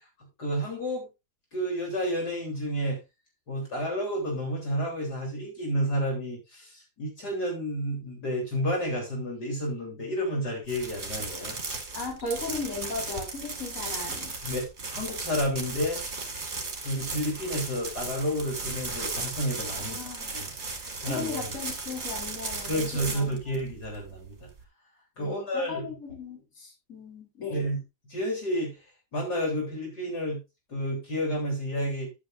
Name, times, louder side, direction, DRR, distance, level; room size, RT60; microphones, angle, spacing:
voice 1, 0.4-1.1 1.5-3.0 3.5-11.6 14.4-16.0 16.8-20.0 20.3-20.5 21.0-21.4 22.7-24.5 25.2-25.9 27.5-27.8 28.1-28.8 29.1-30.4 30.7-32.1, equal, 65° left, -1 dB, 4.1 m, -30 dB
sound 1, 10.6-24.6, right 3 dB, 40° right, 2.5 m, -36 dB
voice 2, 11.9-14.3 19.8-20.3 20.8-23.4 25.2-27.6, left 3 dB, 45° left, 0 dB, 4.2 m, -37 dB
10.5 x 9.1 x 2.5 m, 0.25 s
omnidirectional pair, 1.9 m